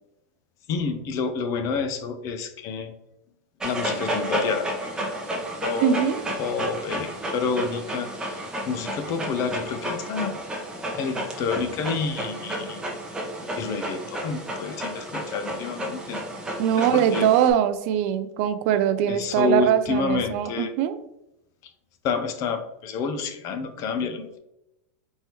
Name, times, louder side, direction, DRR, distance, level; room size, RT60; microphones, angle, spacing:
voice 1, 0.7-2.9 3.6-4.7 5.6-6.0 6.4-10.3 11.0-12.8 13.5-16.2 16.8-17.3 19.1-20.7 22.0-24.4, left 5 dB, 40° left, 8 dB, 0.5 m, -29 dB
Dog, 3.6-17.5, right 1 dB, 10° right, 0.8 m, -32 dB
voice 2, 5.8-6.2 16.6-21.0, right 10 dB, 55° right, 12 dB, 0.4 m, -22 dB
4.4 x 3.3 x 3.0 m, 0.88 s
supercardioid pair, 145°, 9 cm